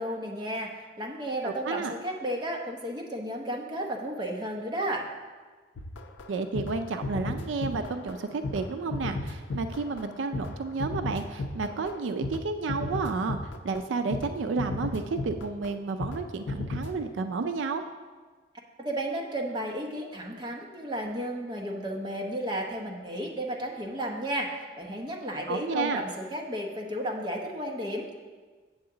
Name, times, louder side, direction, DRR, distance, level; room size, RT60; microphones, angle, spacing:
voice 1, 0.0-5.1 18.8-28.1, right 1 dB, 25° right, 0 dB, 0.8 m, -33 dB
voice 2, 1.4-1.9 6.3-17.8 25.5-26.0, right 4 dB, 75° right, 8 dB, 0.4 m, -31 dB
sound 1, 5.8-12.4 12.7-13.8 14.1-14.3 14.6-15.7 16.0-16.2 16.5-16.9, left 2 dB, 70° left, 0.5 m, -34 dB
7.8 x 7.3 x 3.8 m, 1.4 s
head